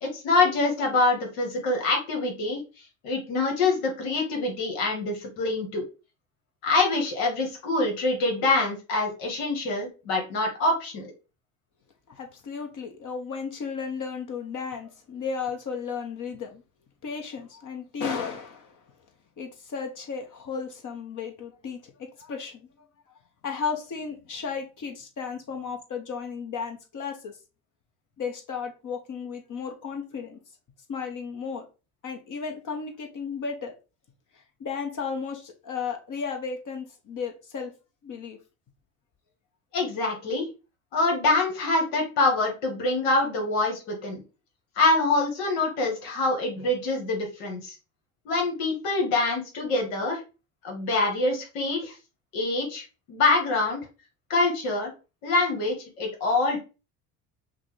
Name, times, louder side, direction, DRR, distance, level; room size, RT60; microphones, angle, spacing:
voice 1, 0.0-2.6 3.0-5.8 6.6-11.1 39.7-40.4 40.9-44.2 44.8-47.8 48.2-50.2 50.6-51.9 52.3-53.8 54.3-54.9 55.2-56.6, left 2 dB, 75° left, 1.5 m, -25 dB
voice 2, 12.1-16.6 17.0-18.8 19.4-22.7 23.4-27.4 28.2-30.4 30.9-31.7 32.0-33.7 34.6-37.7 38.0-38.4, left 5 dB, 40° left, 1.0 m, -34 dB
5.8 x 2.2 x 3.2 m
supercardioid pair, 80°, 45 cm